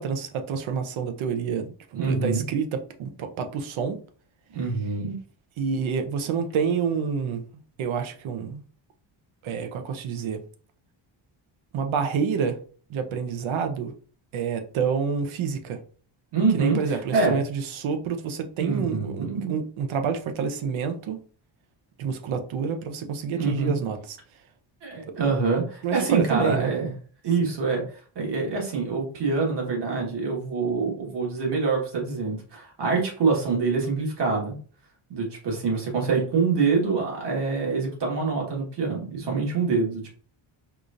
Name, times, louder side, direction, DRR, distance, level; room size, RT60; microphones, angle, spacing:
voice 1, 0.0-4.0 5.6-7.4 7.8-8.6 9.4-10.4 11.7-12.6 12.9-13.9 14.3-15.8 16.5-21.2 22.0-24.2 25.8-26.7, right 6 dB, 75° right, 7 dB, 0.7 m, -28 dB
voice 2, 1.9-2.4 4.5-5.2 16.3-17.4 18.6-19.5 23.3-23.7 24.8-26.9 27.2-27.8 28.1-34.6 35.1-40.1, right 4 dB, 55° right, -1 dB, 1.6 m, -25 dB
4.8 x 2.6 x 2.5 m, 0.43 s
wide cardioid pair, 145°, 48 cm